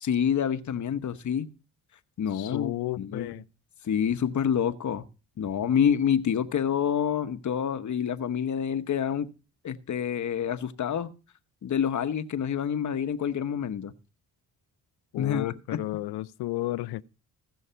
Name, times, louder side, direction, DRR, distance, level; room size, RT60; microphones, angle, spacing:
voice 1, 0.0-1.5 2.2-2.7 3.0-3.3 3.8-5.1 5.4-9.3 9.6-11.1 11.6-13.9 15.2-15.8, left 8 dB, 50° left, 1.0 m, -27 dB
voice 2, 2.3-3.4 15.1-17.0, left 16 dB, 80° left, 0.6 m, -32 dB
15.5 x 6.4 x 5.6 m
cardioid pair, 70°, 38 cm